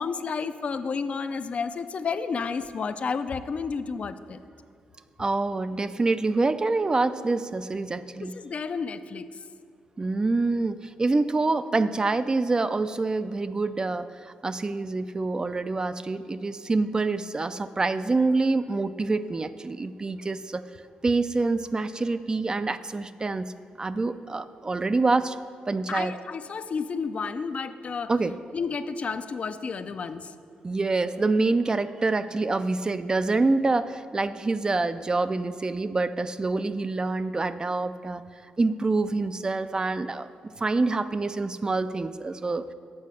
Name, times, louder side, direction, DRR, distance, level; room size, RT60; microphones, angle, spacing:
voice 1, 0.0-4.4 8.4-9.3 25.9-28.1 28.5-30.2, left 5 dB, 50° left, 11 dB, 0.4 m, -31 dB
voice 2, 5.2-8.4 10.0-20.7 21.0-23.5 23.8-25.4 25.7-26.2 28.1-28.4 30.6-38.2 38.6-40.3 40.6-42.7, right 3 dB, 30° right, 12 dB, 0.3 m, -26 dB
8.5 x 5.6 x 6.2 m, 2.3 s
cardioid pair, 80°, 3 cm